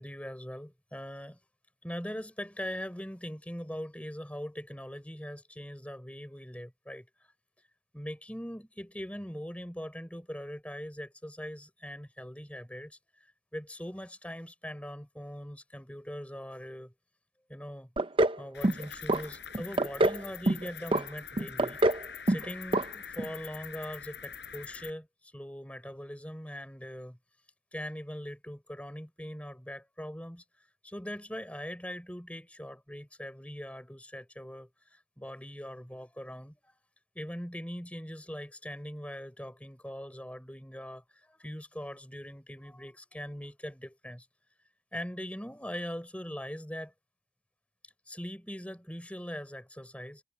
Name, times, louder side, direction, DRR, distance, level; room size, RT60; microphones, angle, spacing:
voice 1, 0.0-1.4 1.8-7.0 7.9-13.0 13.5-16.9 17.5-17.9 18.4-21.8 22.3-27.2 27.7-30.4 30.8-36.7 37.1-44.3 44.9-46.9 48.1-50.2, equal, 5° left, 4.0 m, -41 dB
sound 1, 18.0-18.4 18.6-19.2 19.5-20.2 20.5-21.0 21.4-22.0 22.3-22.5 22.7-22.8 23.2-23.3, right 1 dB, 25° right, 0.6 m, -25 dB
Cricket, 18.5-24.9, left 7 dB, 60° left, 7.1 m, -45 dB
head